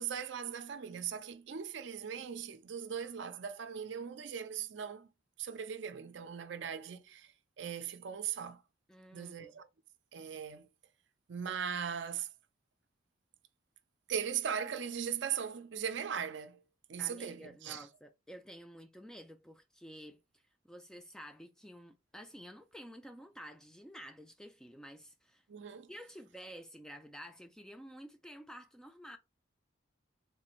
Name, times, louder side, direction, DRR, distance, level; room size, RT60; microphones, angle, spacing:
voice 1, 0.0-5.1 5.4-7.3 7.6-8.6 9.1-9.7 10.1-10.7 11.3-12.3 14.1-16.6 16.9-17.9 25.5-25.9, right 8 dB, 65° right, 0.5 m, -39 dB
voice 2, 8.9-9.6 17.0-20.2 20.6-25.4 25.9-29.2, equal, 5° left, 0.3 m, -51 dB
3.6 x 2.5 x 3.0 m
head